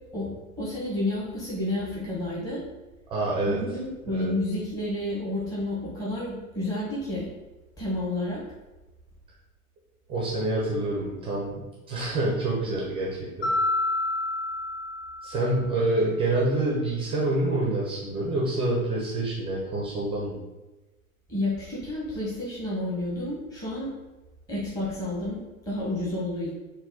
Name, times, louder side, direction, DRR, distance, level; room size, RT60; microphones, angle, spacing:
voice 1, 0.6-2.6 3.5-7.3 7.8-8.4 21.3-23.9 24.5-25.4 25.7-26.5, left 1 dB, 10° left, -6 dB, 0.8 m, -30 dB
voice 2, 3.1-3.6 4.1-4.3 10.1-13.5 15.2-20.4, right 2 dB, 15° right, -4 dB, 0.4 m, -27 dB
Mallet percussion, 13.4-15.8, left 2 dB, 40° left, 0.7 m, -29 dB
3.9 x 2.1 x 3.7 m, 1.1 s
figure-of-eight pair, 90°, 43 cm